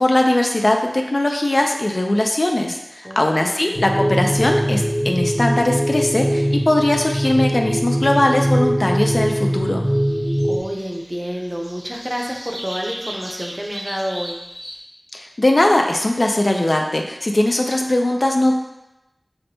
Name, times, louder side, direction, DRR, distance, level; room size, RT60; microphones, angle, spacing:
voice 1, 0.0-9.8 15.1-18.5, left 1 dB, 60° left, 2 dB, 0.4 m, -19 dB
voice 2, 3.0-3.8 10.5-14.4, equal, 20° right, 0 dB, 0.6 m, -29 dB
sound 1, 3.8-10.6, equal, 15° left, 0.8 m, -21 dB
morning bird trio, 9.8-14.8, equal, 75° right, 0.9 m, -36 dB
5.7 x 2.2 x 2.7 m, 0.92 s
wide cardioid pair, 45°, 0 cm